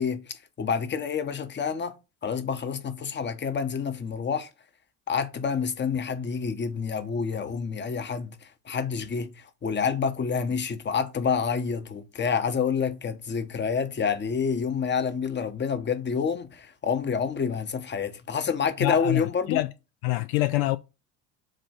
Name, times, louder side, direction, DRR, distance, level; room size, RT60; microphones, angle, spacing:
voice 1, 0.0-1.9 2.2-4.5 5.1-19.6, left 6 dB, 25° left, 1.0 m, -28 dB
voice 2, 18.8-19.7 20.0-20.8, left 18 dB, 65° left, 0.5 m, -25 dB
7.5 x 2.7 x 5.1 m
hypercardioid pair, 70°, 47 cm